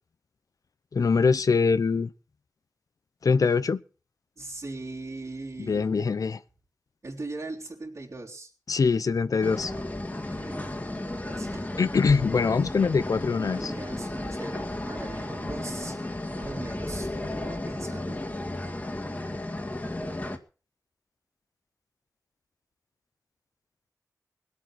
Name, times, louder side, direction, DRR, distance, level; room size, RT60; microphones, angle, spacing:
voice 1, 0.9-2.1 3.2-3.8 5.6-6.4 8.7-9.7 11.8-13.7, left 5 dB, 75° left, 0.7 m, -23 dB
voice 2, 4.4-5.9 7.0-8.5 9.5-10.7 11.2-11.7 13.4-16.0 16.3-18.2, right 2 dB, 55° right, 3.7 m, -40 dB
sound 1, 9.4-20.4, left 1 dB, 30° left, 2.0 m, -34 dB
21.0 x 8.3 x 6.2 m
wide cardioid pair, 65°, 6 cm